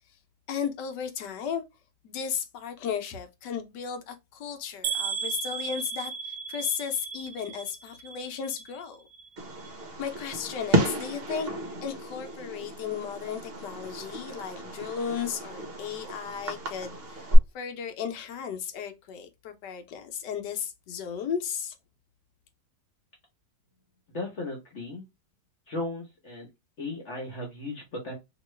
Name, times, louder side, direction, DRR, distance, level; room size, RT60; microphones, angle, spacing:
voice 1, 0.5-1.6 2.0-9.1 10.0-11.5 11.8-17.3 17.5-21.7, left 7 dB, 75° left, 1.3 m, -35 dB
sound 1, 4.8-8.8 9.1-9.7 10.2-10.3 10.7-10.8, right 6 dB, 70° right, 1.2 m, -35 dB
Fireworks, 9.4-17.4, right 1 dB, 45° right, 0.9 m, -31 dB
voice 2, 24.1-25.0 25.7-26.5 26.8-28.1, left 2 dB, 45° left, 1.2 m, -36 dB
3.0 x 2.9 x 3.1 m
omnidirectional pair, 1.9 m